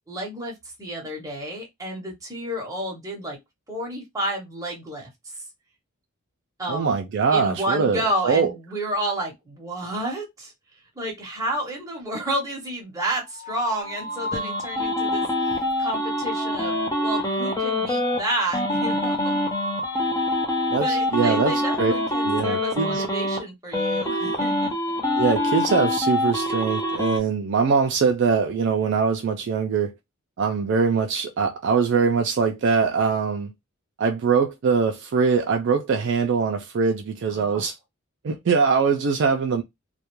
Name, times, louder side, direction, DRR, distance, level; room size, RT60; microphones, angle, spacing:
voice 1, 0.1-0.5 0.8-3.4 3.7-5.4 6.6-7.0 7.3-10.5 11.0-19.4 20.8-25.0 37.3-37.6, right 1 dB, 15° right, 0.8 m, -31 dB
voice 2, 6.7-8.5 20.7-21.9 22.2-23.0 25.2-29.9 30.4-33.5 34.0-37.7 38.2-39.6, right 5 dB, 55° right, 0.3 m, -22 dB
sound 1, 13.0-21.9, equal, 45° left, 1.0 m, -38 dB
sound 2, 13.8-18.2 18.5-23.4 23.7-27.2, left 1 dB, 15° left, 0.5 m, -25 dB
2.3 x 2.1 x 2.9 m
head